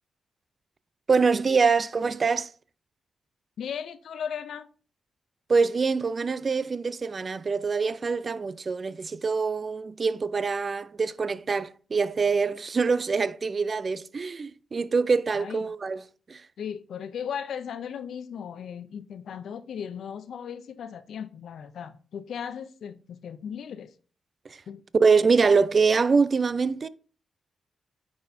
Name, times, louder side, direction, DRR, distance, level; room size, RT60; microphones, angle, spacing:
voice 1, 1.1-2.5 5.5-16.0 16.3-16.4 24.5-24.6 24.9-26.9, right 4 dB, 50° right, 0.5 m, -24 dB
voice 2, 3.6-4.7 15.3-15.7 16.6-23.9 24.7-24.8, left 8 dB, 75° left, 0.4 m, -37 dB
9.3 x 4.2 x 2.7 m
supercardioid pair, 55°, 0 cm